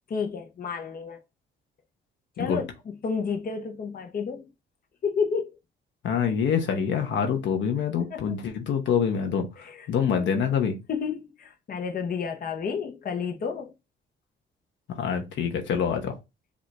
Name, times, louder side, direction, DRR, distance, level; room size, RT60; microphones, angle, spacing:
voice 1, 0.1-1.2 2.4-4.5 5.0-5.6 8.0-8.2 9.6-9.9 10.1-10.3 10.9-13.7, left 5 dB, 45° left, 1.0 m, -31 dB
voice 2, 6.0-9.5 9.9-10.8 15.0-16.1, left 7 dB, 70° left, 1.0 m, -25 dB
5.2 x 2.8 x 3.4 m
cardioid pair, 90°, 20 cm